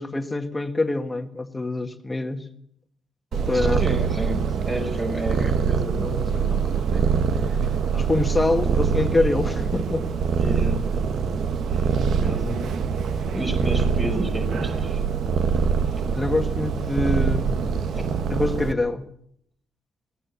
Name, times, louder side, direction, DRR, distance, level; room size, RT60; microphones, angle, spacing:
voice 1, 0.0-2.5 3.3-3.9 7.9-10.1 16.1-18.0 18.3-19.1, left 2 dB, 15° left, 8 dB, 1.7 m, -25 dB
Purr, 3.3-18.7, right 6 dB, 65° right, 1.5 m, -24 dB
voice 2, 3.5-7.6 8.7-9.1 10.4-10.9 11.7-12.7 13.3-15.0 15.8-16.0 18.0-18.1, right 1 dB, 25° right, 2 dB, 5.3 m, -32 dB
22.0 x 17.0 x 7.1 m, 0.71 s
cardioid pair, 90°, 0 cm